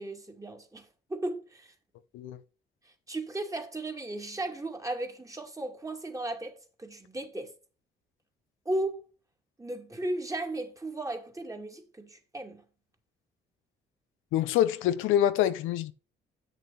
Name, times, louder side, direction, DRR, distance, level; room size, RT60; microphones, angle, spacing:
voice 1, 0.0-1.7 3.1-6.5 6.8-7.5 8.7-9.0 9.6-12.6, right 1 dB, 15° right, 2.3 m, -35 dB
voice 2, 14.3-15.9, left 11 dB, 90° left, 0.7 m, -26 dB
8.1 x 6.8 x 4.1 m
cardioid pair, 75°, 20 cm